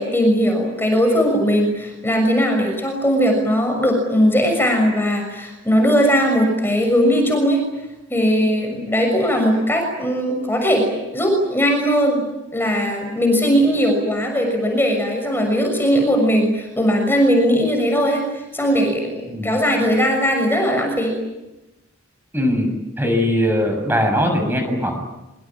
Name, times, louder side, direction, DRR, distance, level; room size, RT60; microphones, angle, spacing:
voice 1, 0.0-7.6 8.1-10.9 11.1-12.2 12.5-18.2 18.5-21.2, equal, 10° left, 2 dB, 6.4 m, -19 dB
voice 2, 22.3-22.7 23.0-25.0, equal, 10° right, 5 dB, 7.0 m, -20 dB
26.0 x 24.5 x 8.7 m, 0.99 s
head